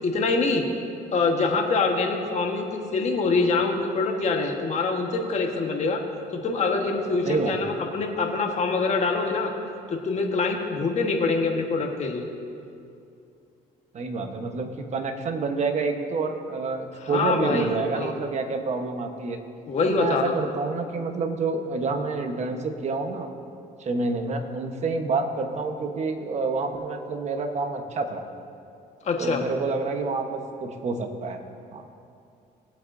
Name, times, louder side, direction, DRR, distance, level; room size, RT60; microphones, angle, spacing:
voice 1, 0.0-0.6 1.1-6.0 6.4-9.5 9.9-12.3 17.1-18.1 19.7-20.3 29.0-29.4, left 3 dB, 40° left, 2 dB, 1.4 m, -25 dB
voice 2, 7.3-7.6 13.9-19.4 19.8-23.3 23.8-28.2 29.2-31.4 31.7-31.8, right 3 dB, 40° right, 5 dB, 1.1 m, -28 dB
19.0 x 8.3 x 2.7 m, 2.5 s
cardioid pair, 110°, 17 cm